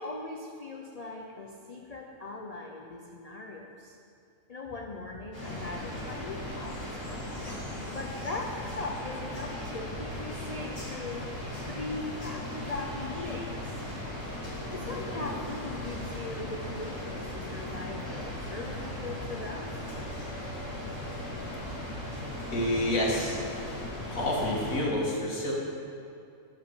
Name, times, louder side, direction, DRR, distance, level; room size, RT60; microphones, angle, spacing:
voice 1, 0.0-4.0 4.5-7.4 7.9-11.3 11.7-13.8 14.7-20.1, left 3 dB, 40° left, 1 dB, 0.6 m, -40 dB
sound 1, 5.3-24.8, left 1 dB, 60° left, 3.5 m, -37 dB
voice 2, 22.5-23.4 24.1-25.5, left 1 dB, 80° left, -4 dB, 2.5 m, -28 dB
11.5 x 7.7 x 5.5 m, 2.5 s
omnidirectional pair, 1.4 m